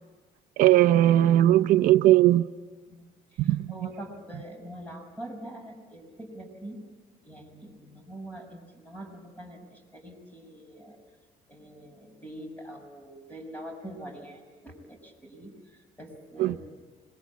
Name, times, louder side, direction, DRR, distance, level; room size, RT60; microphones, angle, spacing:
voice 1, 0.6-2.4 3.4-3.7 16.4-16.6, right 14 dB, 70° right, 10 dB, 0.7 m, -19 dB
voice 2, 3.3-6.8 7.2-11.0 11.5-16.6, right 1 dB, 10° left, 4 dB, 6.2 m, -44 dB
26.0 x 22.0 x 8.4 m, 1.4 s
cardioid pair, 135°, 14 cm